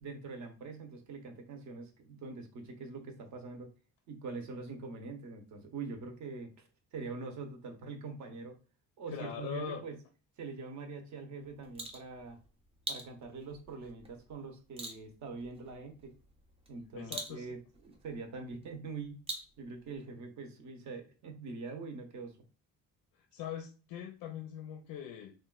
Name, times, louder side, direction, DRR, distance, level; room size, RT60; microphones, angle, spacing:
voice 1, 0.0-3.7 4.1-8.6 9.0-10.0 10.4-12.4 12.9-16.1 16.7-19.2 19.6-22.4, right 4 dB, 55° right, 6 dB, 0.7 m, -44 dB
voice 2, 9.1-9.8 16.9-17.5 23.3-25.3, left 9 dB, 85° left, 6 dB, 0.5 m, -41 dB
sound 1, 11.4-20.0, right 2 dB, 15° right, 0.4 m, -47 dB
4.0 x 2.2 x 2.2 m, 0.37 s
cardioid pair, 180°, 35 cm